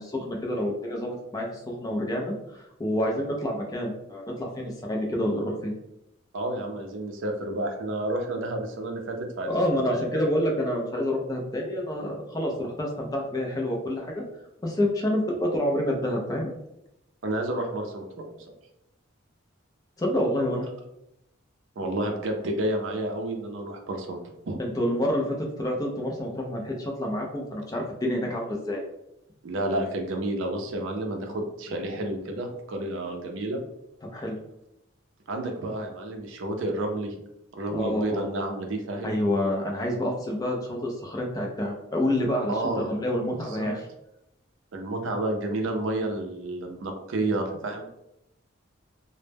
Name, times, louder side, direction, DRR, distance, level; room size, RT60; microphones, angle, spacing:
voice 1, 0.0-5.7 9.5-14.2 14.6-16.5 20.0-20.7 24.6-28.8 34.1-34.3 37.7-38.3 39.0-43.8, left 1 dB, 15° left, 0 dB, 0.3 m, -28 dB
voice 2, 6.3-9.5 9.8-10.2 17.2-18.4 21.8-24.2 24.5-24.6 29.4-33.6 35.3-37.2 37.5-39.1 42.5-42.9 43.5-43.7 44.7-47.9, right 1 dB, 70° right, 3 dB, 0.4 m, -30 dB
2.0 x 2.0 x 3.2 m, 0.85 s
head